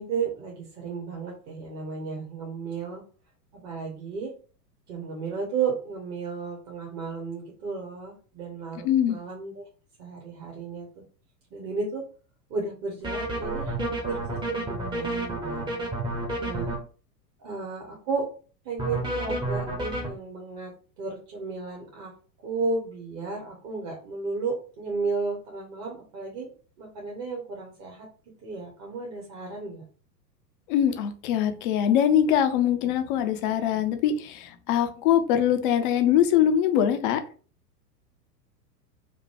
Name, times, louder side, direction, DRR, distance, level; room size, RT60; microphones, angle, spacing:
voice 1, 0.0-3.0 3.6-4.3 4.9-9.6 10.0-10.9 11.5-12.0 12.5-15.7 16.4-16.7 17.4-18.3 18.6-20.7 21.0-22.1 22.4-26.5 26.8-28.1 28.4-29.8, right 4 dB, 30° right, -1 dB, 1.1 m, -33 dB
voice 2, 8.8-9.2 30.7-37.2, left 9 dB, 35° left, 8 dB, 0.5 m, -23 dB
sound 1, 13.0-16.8 18.8-20.1, right 1 dB, 10° right, 0.8 m, -30 dB
5.1 x 2.2 x 3.3 m, 0.39 s
figure-of-eight pair, 95°, 50 cm